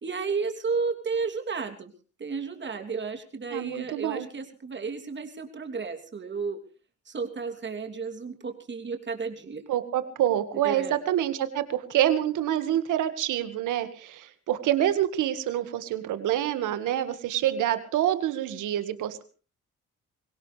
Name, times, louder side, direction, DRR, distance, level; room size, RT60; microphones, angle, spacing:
voice 1, 0.0-1.9 2.2-6.6 7.1-9.6 10.6-11.0, right 5 dB, 40° right, 4 dB, 3.1 m, -32 dB
voice 2, 3.5-4.3 9.7-19.2, right 11 dB, 85° right, 10 dB, 1.9 m, -27 dB
23.5 x 17.5 x 3.4 m, 0.38 s
cardioid pair, 90°, 30 cm